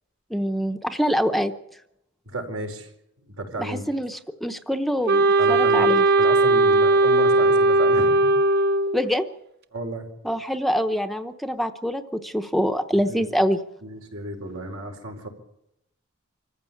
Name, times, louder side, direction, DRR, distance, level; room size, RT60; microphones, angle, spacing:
voice 1, 0.3-1.5 3.6-6.0 8.9-9.3 10.2-13.6, equal, ahead, 8 dB, 0.9 m, -25 dB
voice 2, 2.2-2.9 3.3-3.9 5.4-8.3 9.7-10.1 13.0-13.2 13.8-15.3, right 1 dB, 75° right, 3 dB, 4.7 m, -33 dB
Wind instrument woodwind instrument, 5.1-9.0, right 2 dB, 50° right, 0.8 m, -18 dB
25.5 x 15.0 x 8.7 m, 0.82 s
head